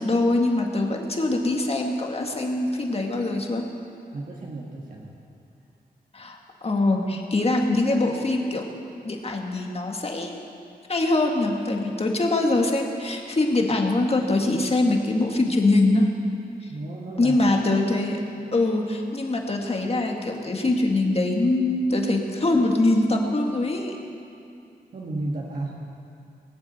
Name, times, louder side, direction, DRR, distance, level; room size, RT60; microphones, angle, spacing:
voice 1, 0.0-3.7 6.1-8.7 9.1-10.4 10.9-16.1 17.2-18.2 18.5-23.9, left 2 dB, 40° left, 1 dB, 1.9 m, -23 dB
voice 2, 4.1-5.1 16.7-17.4 24.9-25.8, right 2 dB, 60° right, -3 dB, 1.8 m, -33 dB
19.5 x 7.3 x 9.2 m, 2.5 s
wide cardioid pair, 90°, 16 cm